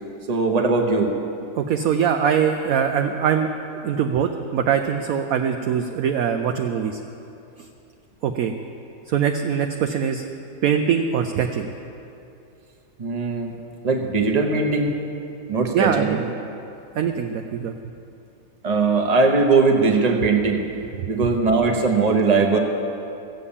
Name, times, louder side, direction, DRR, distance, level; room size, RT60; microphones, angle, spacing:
voice 1, 0.3-1.1 13.0-13.5 13.8-14.9 15.5-16.1 18.6-20.6 21.1-22.6, right 4 dB, 25° right, 2 dB, 1.0 m, -19 dB
voice 2, 1.6-3.5 3.8-7.0 8.2-8.5 9.1-10.2 10.6-11.7 15.7-16.3 17.0-17.7, right 8 dB, 65° right, 5 dB, 0.9 m, -22 dB
15.5 x 8.3 x 7.2 m, 2.7 s
omnidirectional pair, 1.9 m